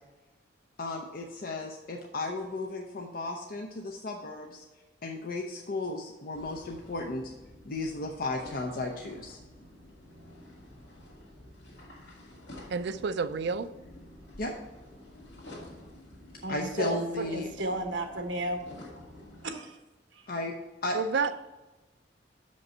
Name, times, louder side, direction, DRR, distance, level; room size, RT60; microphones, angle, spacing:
voice 1, 0.8-4.6 5.0-7.3 7.7-9.4 14.4-14.5 16.5-17.5 20.3-20.5 20.8-20.9, left 2 dB, 55° left, 1 dB, 0.7 m, -34 dB
sound 1, 6.3-19.5, left 1 dB, 70° left, 2.2 m, -50 dB
voice 2, 12.7-13.7 20.9-21.3, right 5 dB, 65° right, 13 dB, 0.4 m, -29 dB
voice 3, 16.4-18.6 19.4-19.8 20.1-20.2, right 2 dB, 85° right, 5 dB, 1.1 m, -33 dB
6.1 x 5.3 x 5.4 m, 1.2 s
head